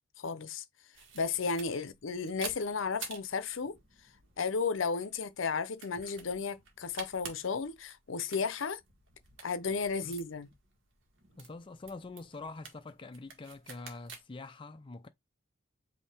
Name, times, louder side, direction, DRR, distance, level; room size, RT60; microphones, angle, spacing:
voice 1, 0.2-0.6 1.1-3.8 4.4-8.8 9.4-10.5, left 5 dB, 75° left, 0.7 m, -33 dB
sound 1, 0.9-14.2, right 5 dB, 70° right, 1.6 m, -50 dB
voice 2, 11.4-15.1, left 3 dB, 25° left, 0.4 m, -45 dB
5.4 x 2.7 x 3.4 m
head